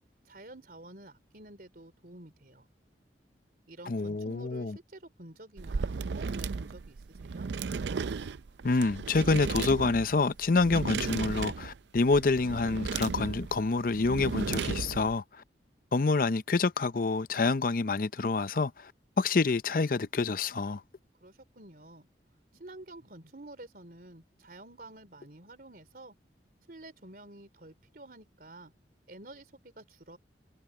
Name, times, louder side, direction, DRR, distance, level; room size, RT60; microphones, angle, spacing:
voice 1, 0.2-2.7 3.7-7.5 21.2-22.1 22.5-26.2 26.7-28.7 29.1-30.2, right 2 dB, 55° right, 3.5 m, -50 dB
voice 2, 3.9-4.7 8.6-15.2 15.9-18.9 19.2-20.8, left 3 dB, 50° left, 0.6 m, -27 dB
sound 1, 5.6-15.2, right 5 dB, 80° right, 0.5 m, -35 dB
head